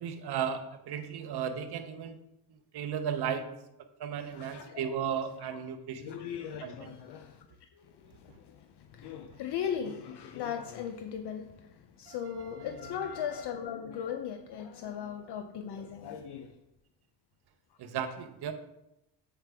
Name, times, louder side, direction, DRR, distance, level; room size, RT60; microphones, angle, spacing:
voice 1, 0.0-2.2 2.7-3.4 4.0-6.2 6.6-6.9 12.1-12.2 17.8-18.5, right 8 dB, 60° right, 9 dB, 0.8 m, -35 dB
voice 2, 4.2-5.0 5.4-5.6 6.0-16.6, left 8 dB, 60° left, 6 dB, 0.6 m, -38 dB
7.9 x 4.5 x 3.4 m, 0.87 s
cardioid pair, 100°, 45 cm